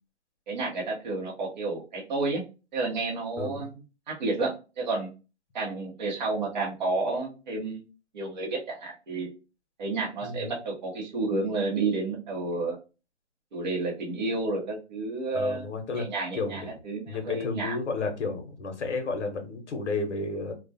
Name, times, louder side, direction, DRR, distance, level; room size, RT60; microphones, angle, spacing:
voice 1, 0.5-2.4 2.7-3.7 4.1-5.1 5.5-7.8 8.1-9.3 9.8-12.8 13.5-15.7 15.9-17.8, right 3 dB, 40° right, -3 dB, 0.8 m, -30 dB
voice 2, 15.3-16.1 16.3-16.7 17.1-20.5, left 3 dB, 75° left, 6 dB, 0.8 m, -32 dB
2.3 x 2.1 x 2.6 m, 0.31 s
hypercardioid pair, 165°, 36 cm